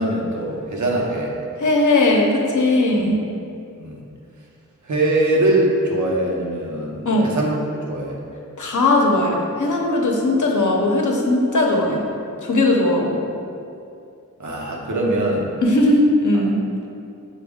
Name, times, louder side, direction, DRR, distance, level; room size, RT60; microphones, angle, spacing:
voice 1, 0.0-1.3 3.0-3.1 3.8-4.0 4.8-8.2 14.4-15.5 16.3-16.5, right 1 dB, 70° right, -2 dB, 0.7 m, -22 dB
voice 2, 1.6-3.1 7.0-7.3 8.6-12.0 12.4-13.2 15.6-16.6, left 2 dB, 70° left, -1 dB, 0.7 m, -18 dB
6.0 x 2.2 x 3.5 m, 2.5 s
wide cardioid pair, 80°, 31 cm